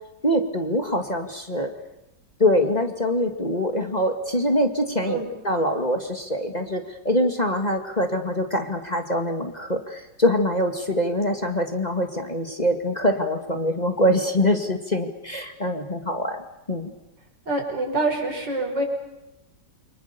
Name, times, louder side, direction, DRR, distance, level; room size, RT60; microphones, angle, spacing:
voice 1, 0.2-1.7 2.4-5.2 5.4-16.9, equal, 25° left, 4 dB, 2.2 m, -24 dB
voice 2, 17.5-18.8, right 2 dB, 80° right, 2 dB, 6.0 m, -26 dB
28.5 x 25.0 x 6.9 m, 0.95 s
omnidirectional pair, 1.9 m